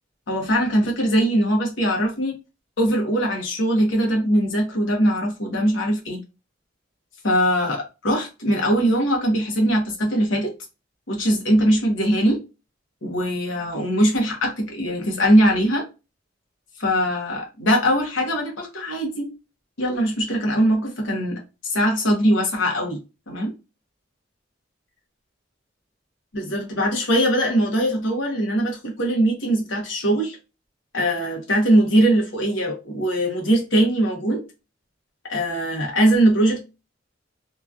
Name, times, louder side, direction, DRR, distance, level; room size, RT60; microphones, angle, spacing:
voice 1, 0.3-2.4 2.8-6.2 7.2-10.5 11.1-12.4 13.0-15.8 16.8-19.3 19.8-23.0 23.3-23.5 26.3-30.4 30.9-34.4 35.3-36.6, equal, 75° left, 1.0 m, -21 dB
2.9 x 2.3 x 2.5 m
head